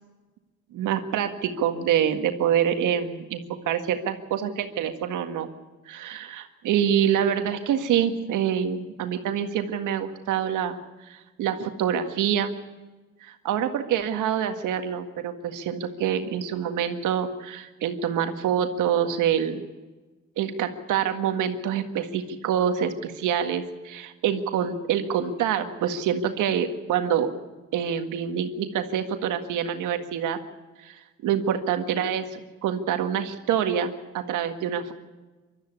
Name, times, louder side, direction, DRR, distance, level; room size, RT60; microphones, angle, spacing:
voice 1, 0.7-5.5 5.9-10.8 11.1-12.6 13.2-19.6 20.4-27.3 27.7-30.4 30.8-34.9, right 9 dB, 90° right, 7 dB, 1.8 m, -26 dB
21.5 x 13.0 x 9.8 m, 1.2 s
cardioid pair, 90°, 30 cm